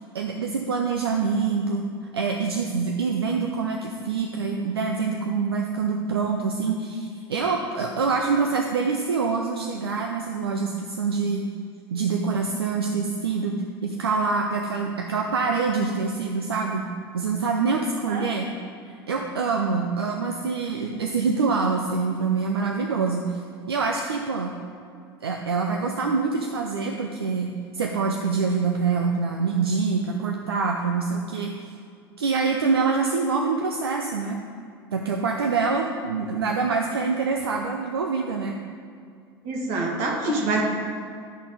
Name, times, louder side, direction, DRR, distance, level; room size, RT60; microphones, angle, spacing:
voice 1, 0.1-1.8 2.1-11.4 11.9-13.5 13.8-16.8 17.1-18.5 18.9-23.4 23.7-24.5 25.2-31.5 32.2-34.4 34.9-38.6, right 4 dB, 80° right, 2 dB, 0.6 m, -25 dB
voice 2, 39.4-40.6, right 2 dB, 55° right, -1 dB, 1.8 m, -25 dB
12.0 x 4.1 x 5.1 m, 2.3 s
figure-of-eight pair, 75°, 13 cm